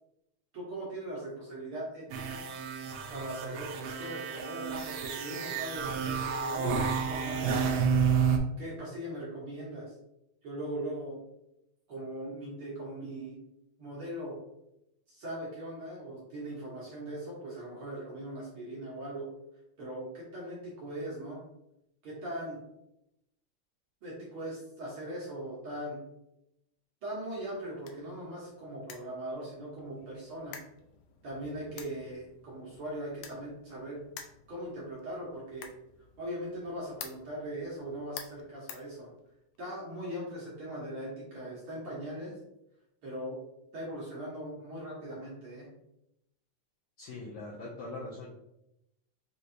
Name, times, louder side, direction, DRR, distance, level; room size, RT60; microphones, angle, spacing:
voice 1, 0.5-2.4 3.1-7.5 8.6-9.9 10.4-11.2 11.9-13.4 13.8-14.4 15.1-19.3 19.8-21.4 22.0-22.6 24.0-26.0 27.0-30.6 31.2-34.0 34.5-35.7 36.2-39.1 39.6-42.4 43.0-43.4 43.7-45.7 47.0-47.1, right 1 dB, 60° right, -5 dB, 1.5 m, -40 dB
sound 1, 2.1-8.4, right 6 dB, 80° right, 1.5 m, -30 dB
sound 2, 27.3-39.6, left 7 dB, 85° left, 1.9 m, -51 dB
voice 2, 47.0-48.4, left 2 dB, 70° left, -6 dB, 1.4 m, -42 dB
5.1 x 3.0 x 2.6 m, 0.84 s
omnidirectional pair, 3.4 m